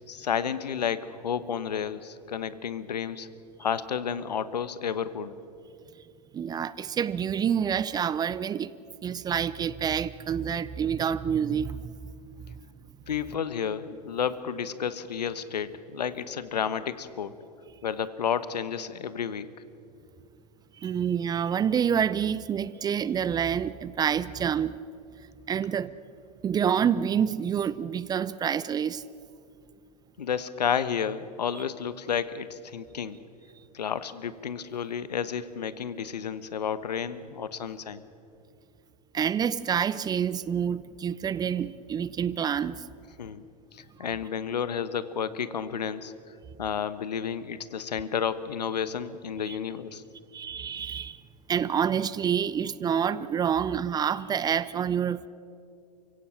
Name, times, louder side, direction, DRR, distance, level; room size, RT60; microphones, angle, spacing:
voice 1, 0.1-3.3 3.6-5.4 13.1-17.3 17.8-19.5 30.2-33.2 33.7-38.0 43.2-43.4 43.7-46.1 46.6-50.0, left 7 dB, 75° left, 1.2 m, -31 dB
voice 2, 6.3-8.8 9.0-11.9 20.8-24.8 25.5-25.9 26.4-29.0 39.1-42.8 49.5-49.6 50.3-51.2 51.5-55.3, right 8 dB, 20° right, 0.5 m, -27 dB
29.0 x 16.5 x 7.5 m
hypercardioid pair, 100°, 21 cm